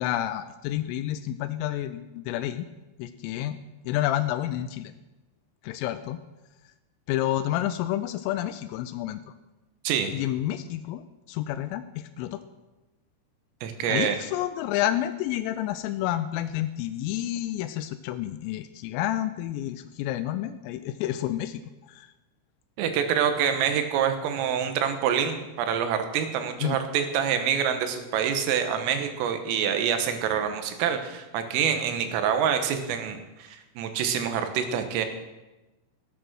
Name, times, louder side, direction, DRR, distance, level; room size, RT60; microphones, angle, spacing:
voice 1, 0.0-2.6 3.0-3.6 3.8-4.9 5.6-6.2 7.1-9.3 10.1-11.0 11.3-12.4 13.9-22.1 26.6-26.8, left 13 dB, 90° left, 10 dB, 3.2 m, -29 dB
voice 2, 13.6-14.2 22.8-35.1, right 8 dB, 90° right, 7 dB, 3.8 m, -26 dB
15.5 x 8.9 x 6.3 m, 1.1 s
omnidirectional pair, 5.8 m